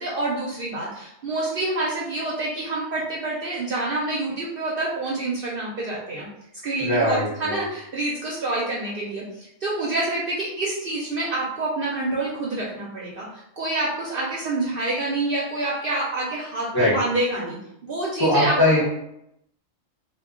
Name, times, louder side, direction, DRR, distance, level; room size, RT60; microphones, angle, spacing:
voice 1, 0.0-6.3 6.6-17.6 17.8-18.8, right 2 dB, 60° right, -5 dB, 0.6 m, -27 dB
voice 2, 6.8-7.6 16.7-16.9 18.2-18.8, left 1 dB, 25° left, -6 dB, 0.5 m, -20 dB
2.2 x 2.2 x 3.6 m, 0.79 s
omnidirectional pair, 1.4 m